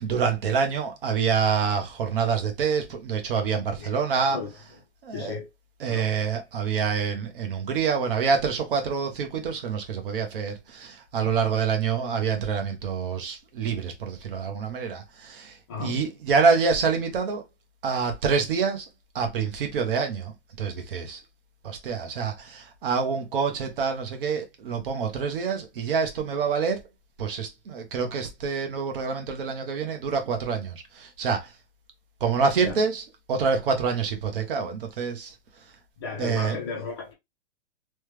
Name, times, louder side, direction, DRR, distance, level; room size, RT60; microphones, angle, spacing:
voice 1, 0.0-4.4 5.0-5.4 5.8-17.4 17.8-18.9 19.1-21.2 21.6-26.8 27.2-31.5 32.2-33.0 33.3-35.3 36.2-36.6, right 5 dB, 50° right, 0.9 m, -26 dB
voice 2, 3.8-4.6 5.1-5.5 5.9-6.1 15.7-16.0 32.6-32.8 36.0-37.1, left 5 dB, 20° left, 0.5 m, -35 dB
3.3 x 2.2 x 3.2 m
hypercardioid pair, 165°, 34 cm